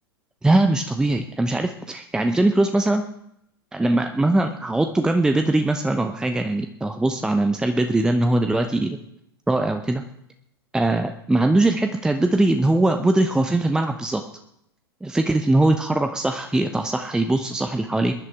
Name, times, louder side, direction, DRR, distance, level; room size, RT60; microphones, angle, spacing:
voice 1, 0.4-3.0 3.7-9.0 9.5-10.0 10.7-14.2 15.0-18.1, right 2 dB, 5° right, 7 dB, 0.7 m, -21 dB
21.5 x 11.0 x 3.5 m, 0.76 s
figure-of-eight pair, 95°, 13 cm